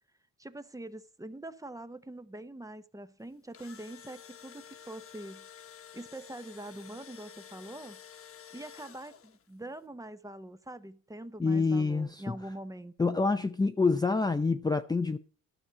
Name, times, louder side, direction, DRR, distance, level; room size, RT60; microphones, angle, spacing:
voice 1, 0.4-5.5 5.9-8.0 8.5-13.2, right 1 dB, 10° right, 0.9 m, -44 dB
Engine / Drill, 3.3-9.5, left 9 dB, 45° left, 1.1 m, -51 dB
voice 2, 11.4-12.4 13.0-15.2, left 4 dB, 15° left, 0.6 m, -27 dB
12.0 x 6.2 x 6.9 m
cardioid pair, 90°, 30 cm